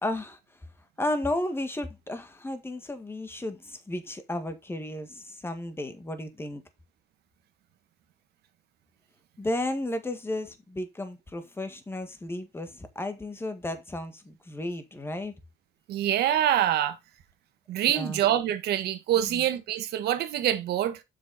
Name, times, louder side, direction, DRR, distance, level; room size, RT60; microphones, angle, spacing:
voice 1, 0.0-0.4 1.0-6.6 9.4-15.3 17.9-18.2 19.3-19.4, left 1 dB, 15° left, 1.7 m, -33 dB
voice 2, 15.9-17.0 17.7-21.0, right 11 dB, 75° right, 1.5 m, -25 dB
7.5 x 6.1 x 4.1 m
cardioid pair, 110°, 17 cm